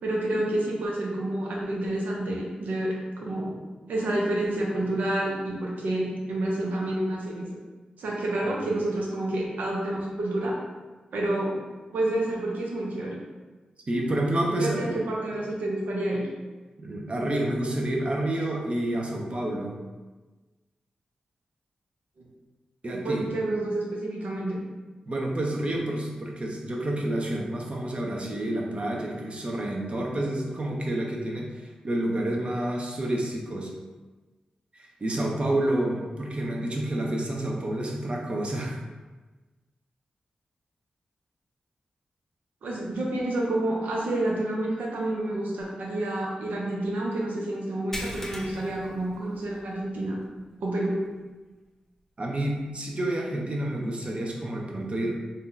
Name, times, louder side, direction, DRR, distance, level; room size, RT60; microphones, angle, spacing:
voice 1, 0.0-7.6 8.0-10.6 11.1-11.6 11.9-13.2 14.6-16.3 22.2-22.3 22.9-24.6 42.6-50.2 50.6-51.0, right 1 dB, 90° right, -2 dB, 0.6 m, -29 dB
voice 2, 13.9-14.9 16.8-19.7 22.8-23.2 25.1-33.7 34.7-38.8 52.2-55.1, right 1 dB, 45° right, -1 dB, 0.6 m, -29 dB
sound 1, 47.9-49.8 50.2-50.4 50.8-50.9 52.6-52.7, left 1 dB, 15° left, 0.5 m, -39 dB
2.7 x 2.2 x 3.8 m, 1.2 s
cardioid pair, 55°, 3 cm